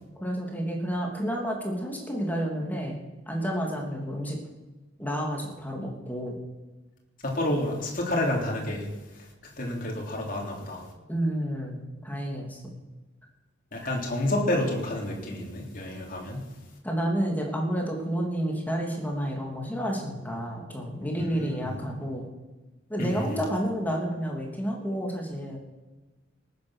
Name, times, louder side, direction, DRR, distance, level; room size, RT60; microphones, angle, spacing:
voice 1, 0.2-2.9 3.3-4.4 5.0-6.4 11.1-12.8 13.8-13.9 16.8-22.3 22.9-25.6, equal, 10° left, 0 dB, 3.0 m, -30 dB
voice 2, 7.2-8.9 9.6-10.8 13.7-16.5 21.2-21.8 23.0-23.3, left 1 dB, 45° left, -1 dB, 3.4 m, -29 dB
19.0 x 9.2 x 6.5 m, 1.1 s
head